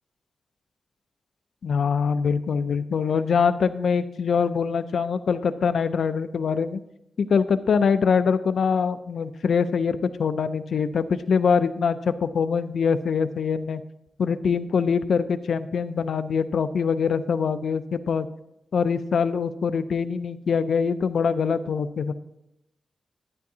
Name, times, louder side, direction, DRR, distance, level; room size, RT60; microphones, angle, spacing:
voice 1, 1.6-6.8 7.2-13.8 14.2-18.3 18.7-22.1, left 6 dB, 75° left, 12 dB, 0.4 m, -23 dB
12.0 x 9.3 x 2.7 m, 0.86 s
wide cardioid pair, 175°, 0 cm